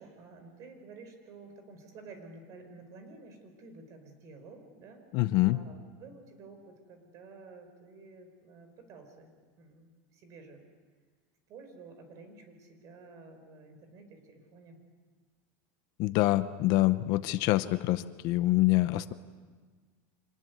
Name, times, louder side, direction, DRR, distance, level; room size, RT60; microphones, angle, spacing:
voice 1, 0.0-5.0 5.5-9.3 9.6-10.7 11.5-14.8, right 3 dB, 40° right, 7 dB, 5.0 m, -51 dB
voice 2, 5.1-5.6 16.0-19.1, left 18 dB, 50° left, 13 dB, 0.8 m, -26 dB
26.0 x 20.5 x 9.5 m, 1.5 s
supercardioid pair, 160°, 8 cm